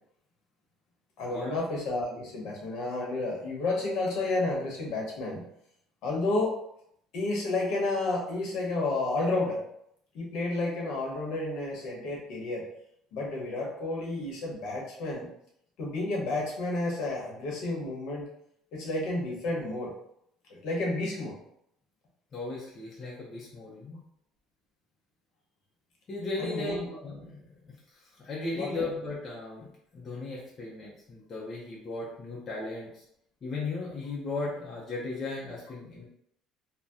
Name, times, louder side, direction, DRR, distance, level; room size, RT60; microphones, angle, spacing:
voice 1, 1.2-5.4 6.0-6.6 7.1-9.6 10.1-12.6 13.1-15.3 15.8-18.2 18.7-19.9 20.5-21.3 26.4-26.9 28.5-28.8, left 2 dB, 60° left, -2 dB, 1.0 m, -31 dB
voice 2, 22.3-24.0 26.1-33.0 33.4-36.0, left 3 dB, 30° left, -5 dB, 0.6 m, -37 dB
2.7 x 2.1 x 3.4 m, 0.73 s
cardioid pair, 165°, 0 cm